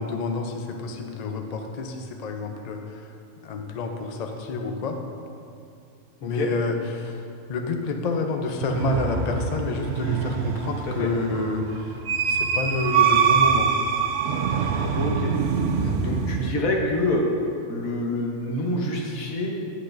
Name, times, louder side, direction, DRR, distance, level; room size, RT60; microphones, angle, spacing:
voice 1, 0.0-3.1 3.4-5.0 6.2-12.0 12.3-13.7 15.8-16.0, left 3 dB, 50° left, 4 dB, 0.5 m, -29 dB
sound 1, 8.6-16.5, right 6 dB, 65° right, 0.7 m, -24 dB
voice 2, 15.0-15.3 16.0-17.2 17.7-19.5, left 1 dB, 80° left, 0 dB, 1.5 m, -26 dB
10.0 x 8.3 x 2.6 m, 2.5 s
omnidirectional pair, 1.4 m